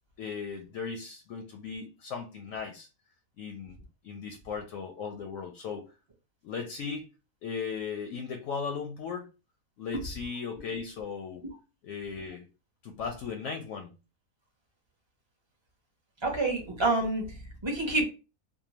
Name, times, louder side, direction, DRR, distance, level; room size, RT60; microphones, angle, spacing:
voice 1, 0.2-2.9 3.4-5.9 6.4-7.1 7.4-9.3 9.8-11.4 11.8-12.5 12.8-14.0, left 5 dB, 70° left, 0.8 m, -37 dB
voice 2, 16.2-17.3 17.6-18.0, right 2 dB, 25° right, 0.6 m, -27 dB
2.7 x 2.2 x 2.9 m
omnidirectional pair, 1.6 m